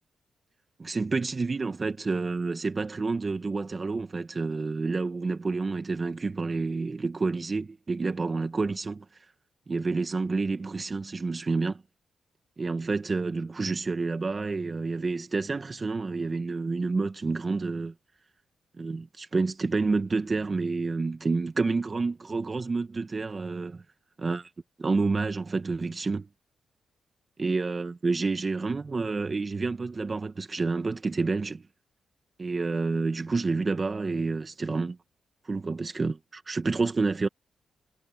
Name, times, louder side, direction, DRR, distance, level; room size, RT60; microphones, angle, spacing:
voice 1, 0.8-9.0 9.7-11.8 12.6-17.9 18.8-23.8 24.2-24.5 24.8-26.3 27.4-31.7 32.4-35.0 35.4-37.3, right 3 dB, 35° right, 1.4 m, -29 dB
cardioid pair, 65°, 0 cm